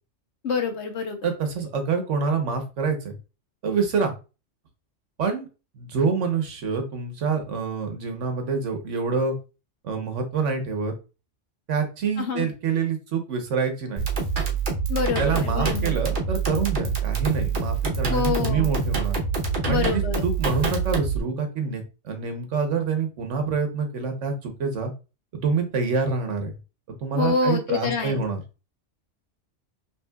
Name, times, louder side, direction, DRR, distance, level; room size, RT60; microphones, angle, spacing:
voice 1, 0.4-1.3 12.2-12.5 14.9-16.0 18.1-18.7 19.7-20.2 27.1-28.2, left 5 dB, 65° left, 5 dB, 1.1 m, -26 dB
voice 2, 1.2-3.2 3.6-4.1 5.2-5.5 5.7-9.3 9.8-10.9 11.7-14.0 15.2-19.2 19.7-24.9 25.3-26.6 26.9-28.4, right 5 dB, 75° right, 6 dB, 1.3 m, -26 dB
sound 1, 14.0-21.2, right 5 dB, 45° right, 1.0 m, -26 dB
5.6 x 3.0 x 2.3 m, 0.30 s
omnidirectional pair, 1.3 m